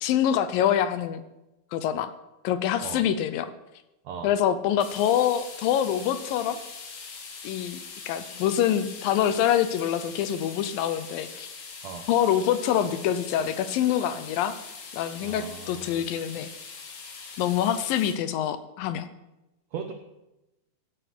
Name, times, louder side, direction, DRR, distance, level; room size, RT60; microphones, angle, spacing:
voice 1, 0.0-1.2 1.7-2.1 2.4-3.5 4.2-6.6 7.4-7.8 8.1-11.5 12.1-14.6 14.9-16.5 17.4-19.1, left 10 dB, 75° left, 12 dB, 2.3 m, -25 dB
sound 1, 4.8-18.1, left 5 dB, 55° left, 3.4 m, -42 dB
voice 2, 15.2-15.9 19.7-19.9, right 7 dB, 80° right, 6 dB, 1.5 m, -37 dB
16.0 x 9.8 x 6.1 m, 0.95 s
omnidirectional pair, 4.4 m